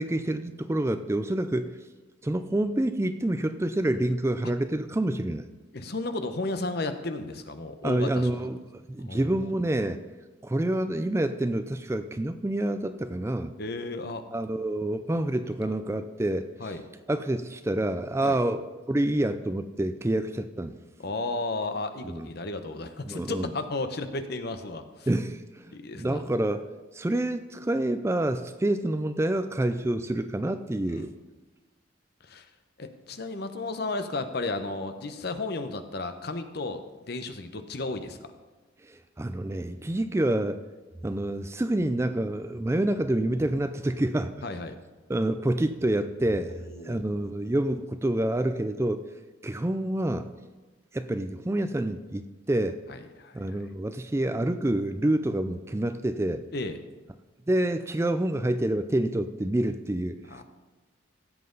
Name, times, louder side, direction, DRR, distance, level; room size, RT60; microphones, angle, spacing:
voice 1, 0.0-1.8 2.2-5.4 7.8-10.0 10.4-13.5 14.3-16.7 17.1-18.6 18.9-20.7 22.0-22.3 23.0-23.5 25.1-25.7 26.0-26.6 26.9-31.1 38.9-40.6 41.0-44.3 45.1-46.5 46.8-49.0 49.4-50.3 50.9-52.8 53.3-56.4 57.5-60.2, right 1 dB, 15° right, 10 dB, 0.4 m, -27 dB
voice 2, 5.7-8.5 9.0-9.5 13.6-14.2 15.6-15.7 16.6-16.8 18.2-18.4 21.0-25.1 25.7-26.2 30.8-31.1 32.2-32.5 32.8-38.3 44.4-44.7 46.6-47.0 52.9-53.6 56.5-56.8 60.3-60.4, left 2 dB, 55° left, 8 dB, 0.8 m, -34 dB
16.5 x 7.5 x 3.9 m, 1.2 s
head